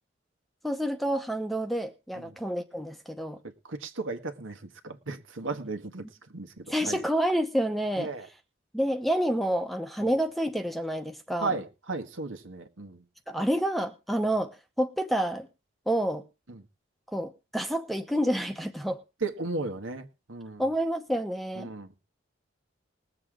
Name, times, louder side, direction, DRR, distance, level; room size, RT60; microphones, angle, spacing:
voice 1, 0.6-3.4 6.7-8.1 8.7-11.6 13.3-15.5 15.9-16.3 17.1-19.0 20.6-21.7, equal, ahead, 0.8 m, -28 dB
voice 2, 3.4-7.0 8.0-8.3 11.4-13.0 16.5-16.6 19.2-20.6 21.5-21.9, right 3 dB, 80° right, 1.6 m, -35 dB
21.0 x 7.7 x 3.8 m
head